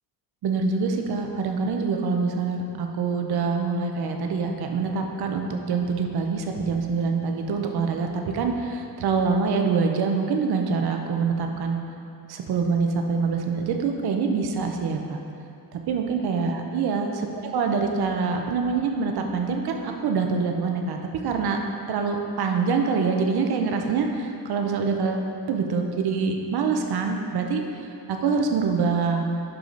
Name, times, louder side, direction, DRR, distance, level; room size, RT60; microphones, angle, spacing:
voice 1, 0.4-11.8 12.3-15.2 15.7-17.3 17.5-21.0 21.2-21.6 21.9-29.2, right 5 dB, 80° right, 3 dB, 0.9 m, -25 dB
10.5 x 4.9 x 3.9 m, 2.6 s
wide cardioid pair, 170°, 38 cm